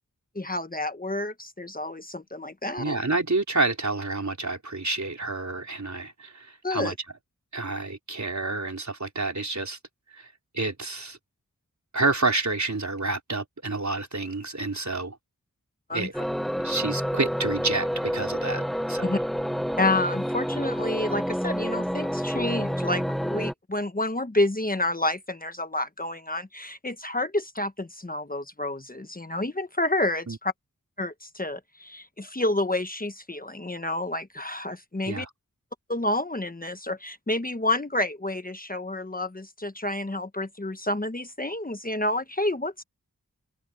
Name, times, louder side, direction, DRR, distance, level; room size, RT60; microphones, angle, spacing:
voice 1, 0.3-3.0 6.6-6.9 15.9-16.2 19.0-19.2 19.8-30.5 31.0-35.3 35.9-42.8, left 1 dB, 25° left, 1.1 m, -29 dB
voice 2, 2.8-6.9 7.5-9.8 10.1-10.3 10.5-11.2 11.9-15.2 15.9-16.1 16.6-19.1 30.3-30.4 35.1-35.3, right 3 dB, 55° right, 4.2 m, -29 dB
sound 1, 16.1-23.5, equal, ahead, 0.8 m, -28 dB
open air
wide cardioid pair, 40°, 33 cm